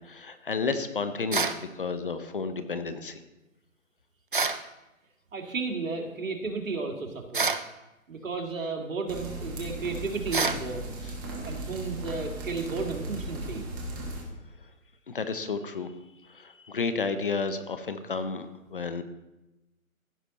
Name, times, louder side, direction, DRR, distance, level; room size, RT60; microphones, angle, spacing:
voice 1, 0.0-3.2 15.1-15.9 16.3-19.0, left 4 dB, 40° left, 10 dB, 0.7 m, -32 dB
sound 1, 1.3-1.6 4.3-4.6 7.3-7.7 10.3-10.6, right 4 dB, 40° right, 0.4 m, -27 dB
voice 2, 5.3-7.5 8.1-10.9 11.4-13.6, right 4 dB, 70° right, 3 dB, 2.1 m, -33 dB
sound 2, 9.1-14.2, right 1 dB, 15° right, 1.4 m, -37 dB
15.5 x 6.0 x 4.1 m, 0.98 s
hypercardioid pair, 165°, 41 cm